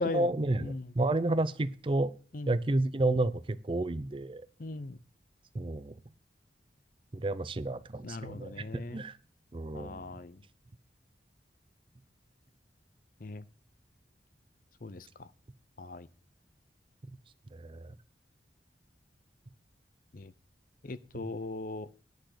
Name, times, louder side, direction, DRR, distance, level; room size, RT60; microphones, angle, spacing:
voice 1, 0.0-2.1 2.5-4.5 5.5-5.9 7.1-9.2 9.5-10.1 17.5-17.9, right 2 dB, 30° right, 0.5 m, -31 dB
voice 2, 4.6-5.0 8.0-9.0 9.7-10.3 13.2-13.4 14.8-15.0 15.8-16.1 20.1-20.3 20.8-21.9, left 3 dB, 50° left, 0.6 m, -38 dB
10.0 x 6.4 x 6.5 m
head